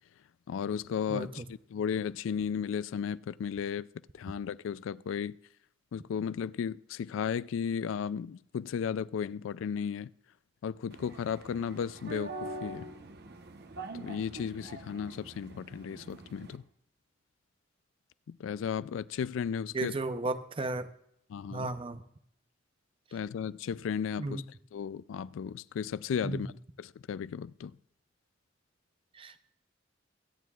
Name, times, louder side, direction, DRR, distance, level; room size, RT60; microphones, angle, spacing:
voice 1, 0.5-3.9 4.1-5.4 5.9-10.1 10.6-12.9 13.9-16.6 18.3-19.9 21.3-21.7 23.1-24.4 24.7-26.5 26.8-27.7, left 7 dB, 90° left, 0.3 m, -34 dB
sound 1, 10.9-16.6, right 2 dB, 60° right, 0.9 m, -44 dB
voice 2, 19.7-20.9 21.5-22.0 24.2-24.4 26.2-26.4 29.2-29.3, right 3 dB, 30° right, 0.6 m, -34 dB
23.5 x 9.3 x 2.4 m
head